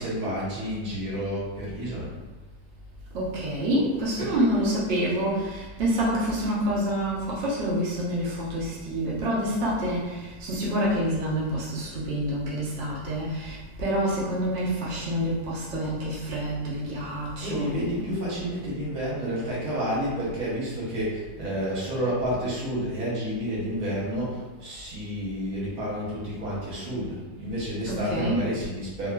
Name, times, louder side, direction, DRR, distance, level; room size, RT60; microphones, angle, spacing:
voice 1, 0.0-2.1 4.2-4.3 17.4-29.1, equal, 60° right, -6 dB, 1.2 m, -30 dB
voice 2, 3.1-18.2 27.8-28.5, equal, 80° right, -7 dB, 0.5 m, -27 dB
2.8 x 2.3 x 2.2 m, 1.2 s
omnidirectional pair, 2.0 m